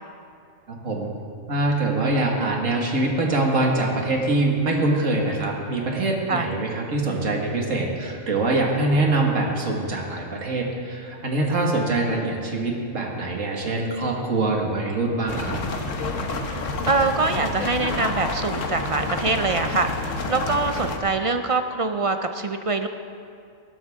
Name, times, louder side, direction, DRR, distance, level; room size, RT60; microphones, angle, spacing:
voice 1, 1.5-15.6, right 2 dB, 75° right, -1 dB, 2.2 m, -24 dB
sound 1, 15.3-21.0, left 3 dB, 75° left, 1.4 m, -29 dB
voice 2, 16.9-19.9 20.3-22.9, right 3 dB, 50° right, 7 dB, 0.4 m, -24 dB
20.0 x 11.5 x 3.6 m, 2.4 s
omnidirectional pair, 1.3 m